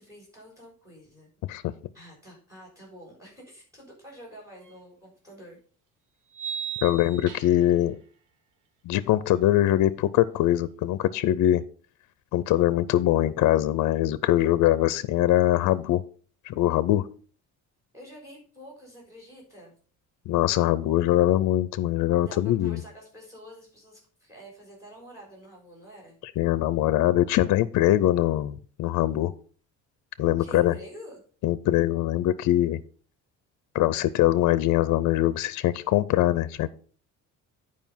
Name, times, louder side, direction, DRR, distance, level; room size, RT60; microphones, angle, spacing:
voice 1, 0.0-1.3 1.9-5.6 17.9-19.7 22.2-26.2 30.4-31.2, equal, 10° right, -1 dB, 4.1 m, -48 dB
sound 1, 4.7-4.8 6.3-7.8, right 8 dB, 80° right, 1.2 m, -36 dB
voice 2, 6.8-8.0 8.8-11.6 12.3-16.0 16.5-17.0 20.3-22.8 26.4-29.3 30.2-30.7 31.4-32.8 33.7-36.7, left 14 dB, 65° left, 16 dB, 0.5 m, -22 dB
9.3 x 4.9 x 5.4 m, 0.42 s
cardioid pair, 160°, 32 cm